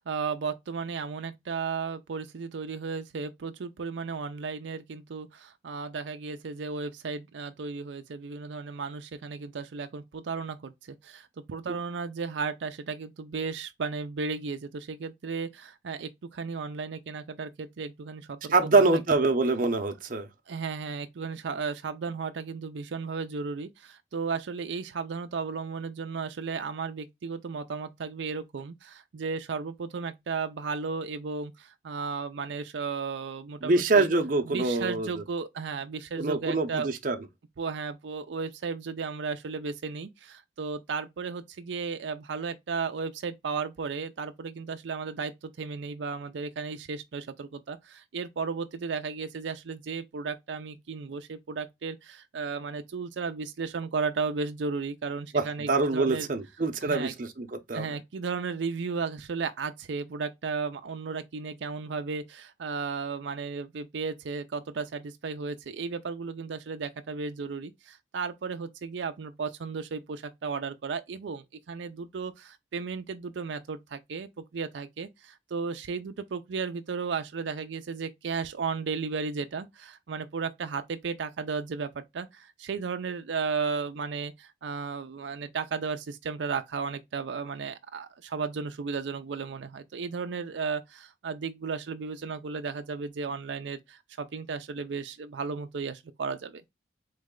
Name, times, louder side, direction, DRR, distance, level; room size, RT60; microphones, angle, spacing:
voice 1, 0.0-18.9 20.5-34.1 34.4-36.9 37.6-56.3 56.8-57.1 57.7-96.6, right 5 dB, 85° right, 0.5 m, -34 dB
voice 2, 18.5-20.3 33.6-35.1 36.2-37.2 55.3-57.8, right 3 dB, 50° right, 0.7 m, -25 dB
4.0 x 3.2 x 3.6 m
head